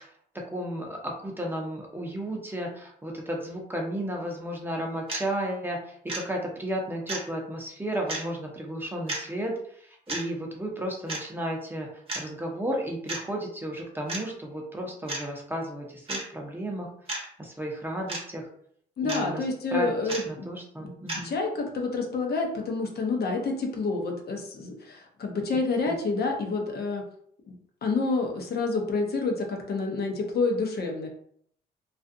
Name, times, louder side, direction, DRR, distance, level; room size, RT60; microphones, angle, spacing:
voice 1, 0.5-5.8 6.1-9.5 9.8-11.9 12.1-16.9 17.4-18.4 19.0-19.4 19.7-21.3 25.9-26.0, right 1 dB, 10° right, 0 dB, 0.7 m, -33 dB
sound 1, 5.1-5.2 6.1-6.2 7.1-7.3 8.1-8.2 9.1-9.2 10.1-10.2 11.1-11.3 12.1-12.2 13.1-13.2 14.1-14.2 15.1-15.2 16.1-16.2 17.1-17.2 18.1-18.2 19.1-19.2 20.1-20.2 21.1-21.2, right 2 dB, 30° right, 1.0 m, -32 dB
voice 2, 19.0-20.5 20.8-20.9 21.2-27.0 27.5-31.1, left 3 dB, 55° left, 1 dB, 0.7 m, -28 dB
2.4 x 2.3 x 2.6 m, 0.64 s
cardioid pair, 75°, 20 cm